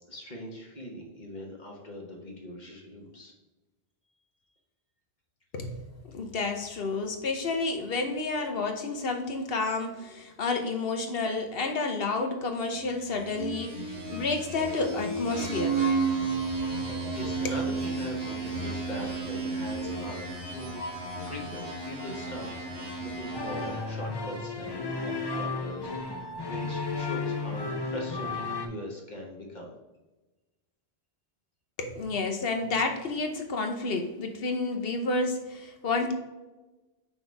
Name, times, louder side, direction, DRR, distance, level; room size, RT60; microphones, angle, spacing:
voice 1, 0.1-3.3 16.9-22.6 23.0-29.7, equal, 45° left, -1 dB, 1.4 m, -41 dB
voice 2, 5.5-15.8 16.2-16.6 16.9-17.1 17.4-17.5 31.8-36.1, left 3 dB, 65° left, 5 dB, 1.1 m, -30 dB
sound 1, 13.1-24.0, right 4 dB, 85° right, 2.2 m, -32 dB
sound 2, 23.3-28.7, left 3 dB, 25° left, 0.6 m, -33 dB
5.9 x 4.0 x 4.6 m, 1.1 s
omnidirectional pair, 1.1 m